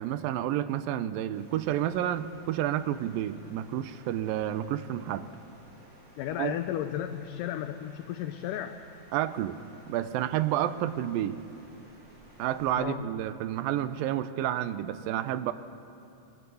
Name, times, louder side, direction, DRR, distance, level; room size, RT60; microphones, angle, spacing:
voice 1, 0.0-5.2 6.4-6.6 9.1-9.6 9.9-11.4 12.4-15.5, right 12 dB, 85° right, 12 dB, 2.5 m, -30 dB
sound 1, 1.3-12.7, right 1 dB, 55° right, 6.9 m, -56 dB
voice 2, 6.2-8.8 12.8-13.1, left 11 dB, 80° left, 7 dB, 2.2 m, -34 dB
23.5 x 21.5 x 7.0 m, 2.8 s
omnidirectional pair, 4.0 m